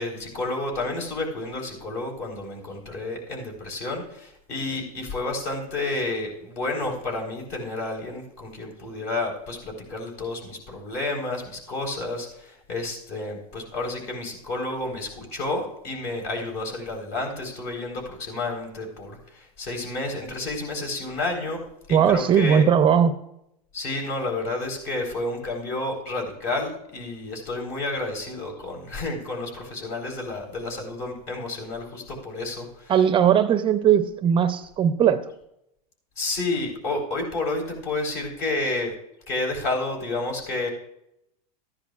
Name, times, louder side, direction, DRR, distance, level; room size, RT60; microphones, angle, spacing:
voice 1, 0.0-21.6 21.9-22.7 23.7-32.9 36.2-38.9 39.3-40.7, left 2 dB, 55° left, 1 dB, 4.1 m, -30 dB
voice 2, 21.9-23.2 32.9-35.3, right 8 dB, 25° right, 11 dB, 0.5 m, -19 dB
14.5 x 10.5 x 2.4 m, 0.80 s
supercardioid pair, 120°, 20 cm